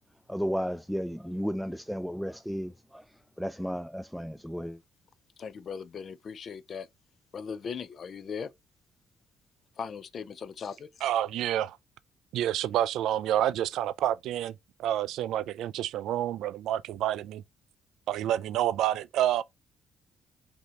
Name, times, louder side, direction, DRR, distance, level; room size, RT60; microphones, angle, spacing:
voice 1, 0.3-4.8, equal, ahead, 0.3 m, -34 dB
voice 2, 5.4-6.9 7.3-8.5 9.8-11.0, left 6 dB, 55° left, 0.5 m, -38 dB
voice 3, 11.0-11.8 12.3-14.5 14.8-17.4 18.1-19.4, right 12 dB, 85° right, 0.3 m, -28 dB
5.2 x 2.8 x 3.2 m
cardioid pair, 90°, 0 cm